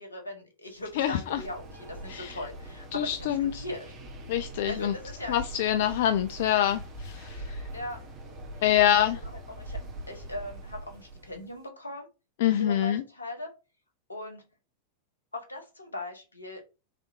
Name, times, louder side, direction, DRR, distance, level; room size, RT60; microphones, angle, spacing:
voice 1, 0.0-3.9 4.7-5.4 7.7-8.0 8.8-9.8 10.1-12.1 12.6-13.5 14.1-14.4 15.3-16.6, left 2 dB, 80° left, 1.2 m, -39 dB
sound 1, 0.7-11.6, right 1 dB, 30° right, 1.4 m, -42 dB
voice 2, 1.0-1.4 2.1-2.4 2.9-3.6 4.3-4.9 5.3-7.6 8.6-9.2 12.4-13.0, left 11 dB, 55° left, 0.3 m, -26 dB
4.1 x 3.5 x 2.8 m
figure-of-eight pair, 90°, 0 cm